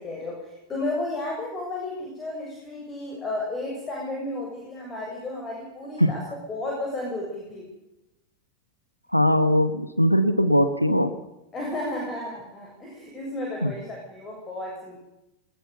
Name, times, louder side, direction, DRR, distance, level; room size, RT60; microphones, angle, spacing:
voice 1, 0.0-7.7 11.5-15.0, left 2 dB, 20° left, -1 dB, 7.2 m, -33 dB
voice 2, 9.1-11.1 13.6-13.7, equal, 90° left, 9 dB, 1.5 m, -20 dB
21.0 x 20.5 x 7.0 m, 0.94 s
figure-of-eight pair, 90°, 0 cm